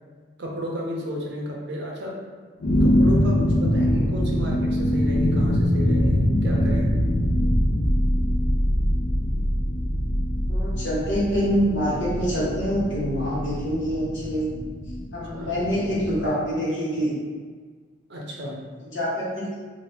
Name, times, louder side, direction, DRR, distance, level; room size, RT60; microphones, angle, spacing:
voice 1, 0.4-2.2 2.8-6.9 15.3-15.7 18.1-18.6, equal, 55° right, -2 dB, 0.6 m, -33 dB
sound 1, 2.6-16.3, equal, 90° left, 0.5 m, -23 dB
voice 2, 10.5-14.5 15.1-17.1 18.9-19.5, equal, 60° left, -9 dB, 1.3 m, -25 dB
2.8 x 2.5 x 3.3 m, 1.5 s
head